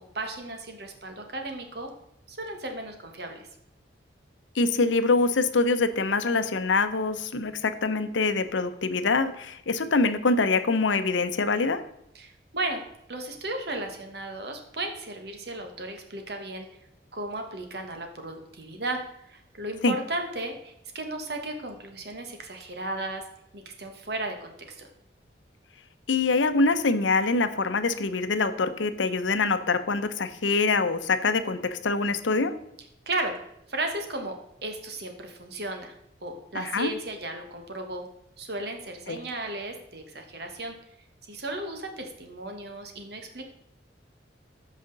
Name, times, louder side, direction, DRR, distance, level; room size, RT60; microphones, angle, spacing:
voice 1, 0.1-1.9 2.3-3.5 12.1-12.8 13.1-16.7 17.1-19.0 19.3-23.2 23.5-24.8 33.1-33.3 33.7-34.3 34.6-35.9 36.2-38.0 38.4-40.7 41.3-43.4, right 2 dB, 60° right, 4 dB, 1.4 m, -35 dB
voice 2, 4.6-11.8 19.8-20.0 26.1-32.5 36.5-36.9 39.1-39.2, left 3 dB, 85° left, 11 dB, 0.7 m, -24 dB
13.5 x 5.0 x 3.9 m, 0.80 s
head